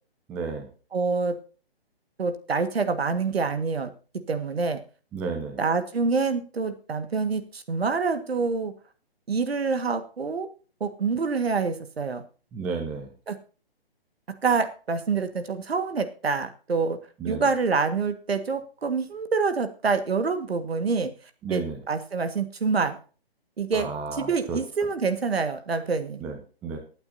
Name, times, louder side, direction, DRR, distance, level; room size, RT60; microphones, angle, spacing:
voice 1, 0.3-0.7 5.1-5.6 12.5-13.1 17.2-17.5 21.4-21.8 23.7-24.6 26.2-26.8, right 4 dB, 5° right, 4 dB, 0.4 m, -32 dB
voice 2, 0.9-1.4 2.2-3.9 4.3-4.8 5.6-8.7 9.3-10.5 10.8-12.2 13.3-13.4 14.4-17.0 17.3-21.1 21.5-23.0 23.6-26.2, right 4 dB, 75° right, 9 dB, 1.9 m, -26 dB
20.0 x 8.9 x 2.8 m, 0.37 s
figure-of-eight pair, 140°, 31 cm